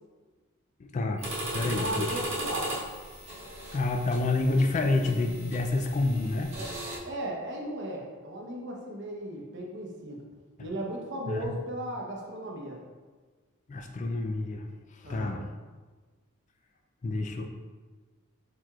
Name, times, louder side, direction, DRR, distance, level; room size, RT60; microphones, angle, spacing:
voice 1, 0.8-1.3 1.5-2.2 3.7-6.5 11.3-11.5 13.7-14.7 15.0-15.4 17.0-17.5, left 2 dB, 35° left, 4 dB, 0.3 m, -28 dB
sound 1, 1.2-7.0, right 1 dB, 30° right, 1.0 m, -37 dB
voice 2, 1.6-2.8 6.5-6.7 7.0-10.3 10.6-12.8 15.0-15.4, right 1 dB, 55° right, -1 dB, 0.8 m, -36 dB
4.6 x 4.3 x 2.4 m, 1.4 s
head